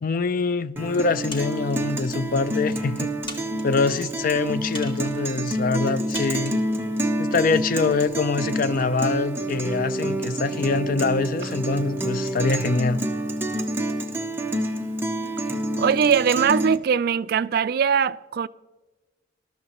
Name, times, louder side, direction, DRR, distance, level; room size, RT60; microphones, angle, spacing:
voice 1, 0.0-3.1 3.6-6.6 7.2-13.0, left 4 dB, 45° left, 0.4 m, -24 dB
Guitar, 0.8-16.8, right 1 dB, 10° right, 0.8 m, -28 dB
sound 1, 1.3-1.9 2.6-2.7 3.3-3.9 4.7-5.3 6.1-6.7, left 1 dB, 25° left, 1.6 m, -39 dB
voice 2, 15.8-18.5, right 7 dB, 50° right, 0.3 m, -21 dB
20.5 x 13.0 x 3.0 m
head